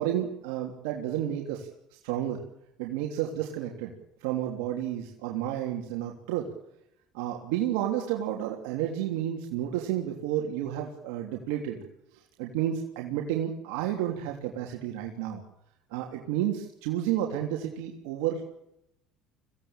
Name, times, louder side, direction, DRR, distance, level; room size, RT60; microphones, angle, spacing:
voice 1, 0.0-1.7 2.0-2.4 2.8-3.9 4.2-6.5 7.1-11.8 12.4-15.4 15.9-18.6, right 11 dB, 85° right, 1 dB, 3.2 m, -31 dB
24.5 x 17.0 x 9.0 m, 0.81 s
cardioid pair, 115°, 0 cm